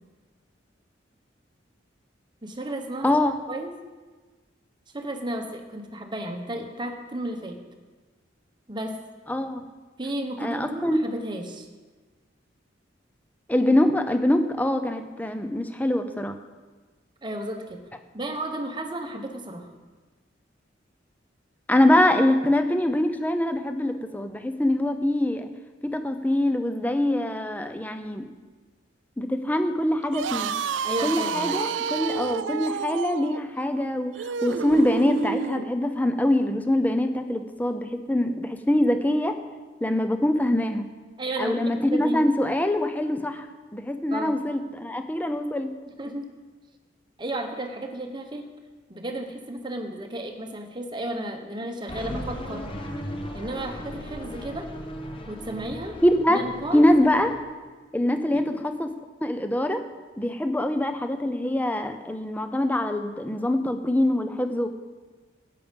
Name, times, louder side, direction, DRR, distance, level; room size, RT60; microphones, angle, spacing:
voice 1, 2.4-3.1 3.5-3.7 4.9-7.6 8.7-9.0 10.0-11.7 17.2-17.8 18.1-19.7 30.8-31.5 41.2-42.2 44.1-44.4 46.0-46.3 47.2-48.5 48.9-52.6 53.3-54.7 55.3-56.0 56.3-56.9 58.3-58.6, right 1 dB, 25° right, 4 dB, 1.1 m, -33 dB
voice 2, 3.0-3.4 9.3-9.6 10.4-11.0 13.5-16.3 21.7-25.5 25.8-28.2 29.2-30.5 31.0-39.4 39.8-40.9 41.4-43.5 43.7-45.7 56.0-56.4 56.7-57.3 57.9-58.9 59.2-59.8 60.2-64.7, left 1 dB, 10° left, 8 dB, 0.7 m, -24 dB
sound 1, 30.0-35.7, right 6 dB, 80° right, 0.5 m, -30 dB
sound 2, 51.9-57.4, equal, 30° left, 1.2 m, -37 dB
12.5 x 8.5 x 5.3 m, 1.3 s
head